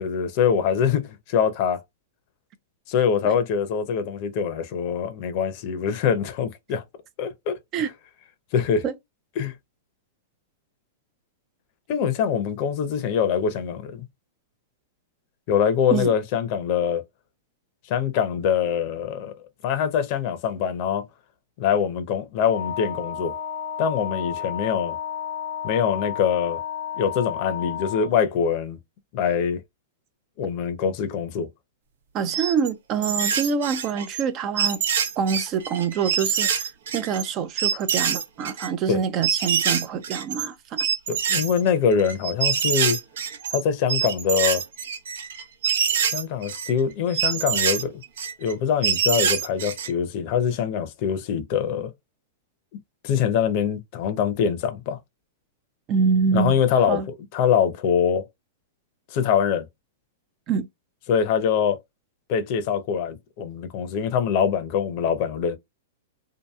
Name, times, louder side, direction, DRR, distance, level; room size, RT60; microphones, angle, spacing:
voice 1, 0.0-1.8 2.9-6.8 7.2-7.6 8.5-8.8 9.4-9.5 11.9-14.0 15.5-17.0 17.9-19.3 19.6-21.1 21.6-23.4 23.8-25.0 25.6-26.6 27.0-28.8 29.1-29.6 30.4-31.5 38.9-39.0 41.1-43.0 43.5-44.6 46.1-48.0 48.4-51.9 53.0-55.0 56.3-57.0 57.3-58.2 59.1-59.7 61.1-61.8 62.3-65.6, left 7 dB, 50° left, 0.6 m, -24 dB
Wind instrument woodwind instrument, 22.5-28.2, left 9 dB, 85° left, 0.7 m, -32 dB
voice 2, 32.1-34.8 35.2-40.8 55.9-56.6 56.9-57.1 60.5-60.7, right 6 dB, 35° right, 0.5 m, -25 dB
sound 1, 32.3-32.7 33.0-34.2 34.6-37.3 37.6-38.7 39.2-40.5 40.8-43.6 43.9-46.7 47.1-48.5 48.8-49.9, right 7 dB, 75° right, 0.7 m, -25 dB
2.8 x 2.5 x 2.3 m
hypercardioid pair, 130°, 0 cm